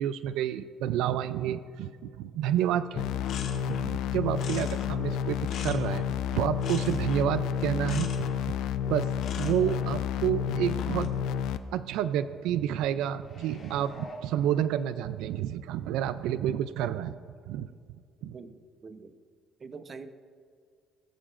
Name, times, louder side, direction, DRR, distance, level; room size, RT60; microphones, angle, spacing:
voice 1, 0.0-3.0 3.7-6.1 6.3-8.5 8.9-9.1 9.4-11.1 11.7-17.2 17.5-17.7 18.2-18.4, right 10 dB, 90° right, 13 dB, 0.4 m, -29 dB
sound 1, 2.6-2.7 3.0-4.0 4.3-6.2 6.6-7.4 7.8-8.3 9.2-9.9 10.6-11.1, left 6 dB, 65° left, 2.1 m, -42 dB
sound 2, 3.0-11.6, left 8 dB, 85° left, 0.6 m, -30 dB
sound 3, 13.2-15.3 15.8-15.9, equal, 45° left, 2.3 m, -47 dB
voice 2, 18.3-19.2 19.6-20.1, right 4 dB, 35° right, 9 dB, 0.8 m, -45 dB
20.5 x 14.0 x 2.5 m, 2.2 s
cardioid pair, 115°, 0 cm